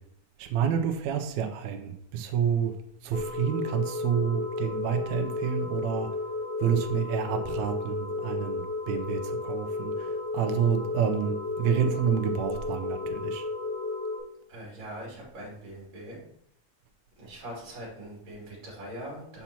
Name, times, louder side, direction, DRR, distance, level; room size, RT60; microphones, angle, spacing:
voice 1, 0.4-2.8 3.0-6.1 6.6-13.5, right 8 dB, 80° right, 5 dB, 1.9 m, -29 dB
sound 1, 3.1-14.2, left 3 dB, 55° left, 2.3 m, -33 dB
voice 2, 14.5-16.2 17.2-19.4, right 1 dB, 40° right, -5 dB, 3.1 m, -42 dB
7.2 x 5.6 x 2.9 m, 0.72 s
omnidirectional pair, 3.5 m